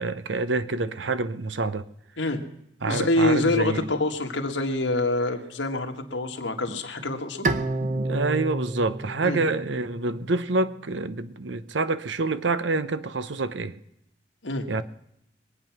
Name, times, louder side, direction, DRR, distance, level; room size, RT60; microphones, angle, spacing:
voice 1, 0.0-1.9 2.8-3.8 6.7-6.8 7.4-13.7 14.7-14.8, right 3 dB, 75° right, 0.8 m, -27 dB
voice 2, 2.8-7.5 9.2-9.4 14.4-14.8, left 2 dB, 80° left, 1.8 m, -26 dB
Bowed string instrument, 7.4-10.7, right 2 dB, 45° right, 0.9 m, -30 dB
23.0 x 9.1 x 6.0 m
head